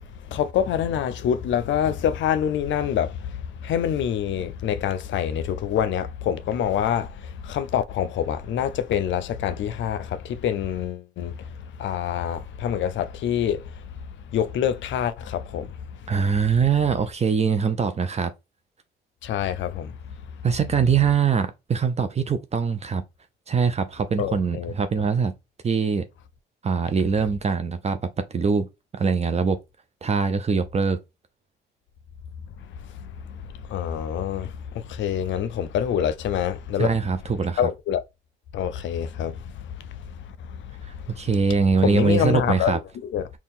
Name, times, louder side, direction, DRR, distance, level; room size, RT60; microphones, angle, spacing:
voice 1, 0.1-16.1 19.2-20.2 24.2-24.7 32.6-36.9 37.6-38.0 38.5-41.3 41.7-43.3, left 9 dB, 70° left, 0.5 m, -27 dB
voice 2, 16.1-18.3 20.4-23.0 23.5-25.3 25.6-26.1 26.6-28.7 28.9-29.6 30.0-31.0 36.8-37.6 41.2-42.8, right 5 dB, 35° right, 0.6 m, -22 dB
4.2 x 2.3 x 3.6 m
cardioid pair, 90°, 20 cm